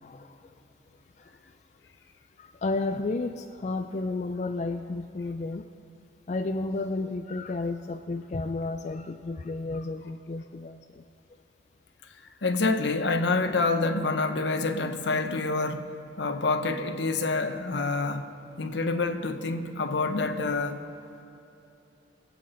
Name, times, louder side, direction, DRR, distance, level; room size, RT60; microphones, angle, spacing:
voice 1, 0.0-0.4 1.2-1.3 2.4-5.7 6.3-11.0, left 3 dB, 40° left, 0.3 m, -32 dB
voice 2, 12.4-15.9 16.2-18.3 18.6-20.8, left 3 dB, 75° left, 0.8 m, -27 dB
22.5 x 8.5 x 3.8 m
head